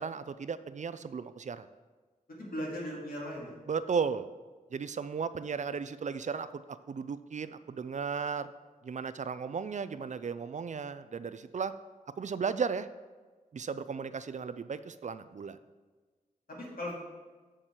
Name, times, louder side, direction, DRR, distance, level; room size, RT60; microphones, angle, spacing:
voice 1, 0.0-1.7 3.7-4.3 4.7-8.5 8.8-11.7 12.2-12.9 13.5-15.6, right 6 dB, 55° right, 13 dB, 0.4 m, -35 dB
voice 2, 2.3-3.5 16.5-16.9, equal, 75° left, -4 dB, 2.3 m, -38 dB
7.3 x 6.6 x 4.5 m, 1.4 s
wide cardioid pair, 85°, 15 cm